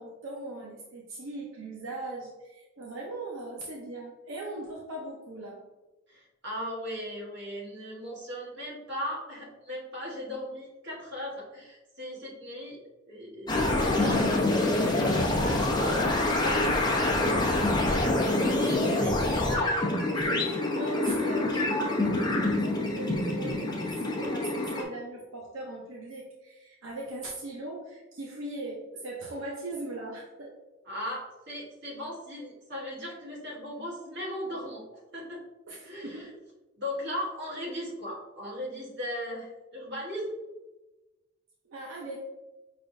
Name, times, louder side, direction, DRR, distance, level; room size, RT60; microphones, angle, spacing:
voice 1, 0.0-5.6 18.6-30.6 35.7-36.3 41.7-42.2, right 2 dB, 80° right, -3 dB, 0.7 m, -40 dB
voice 2, 6.1-17.4 17.7-19.2 19.5-20.0 30.8-34.8 35.1-35.4 35.8-36.3 36.8-40.4, equal, 55° right, -3 dB, 1.3 m, -38 dB
sound 1, 13.5-24.8, left 2 dB, 20° left, 0.7 m, -26 dB
5.2 x 3.3 x 2.6 m, 1.1 s
head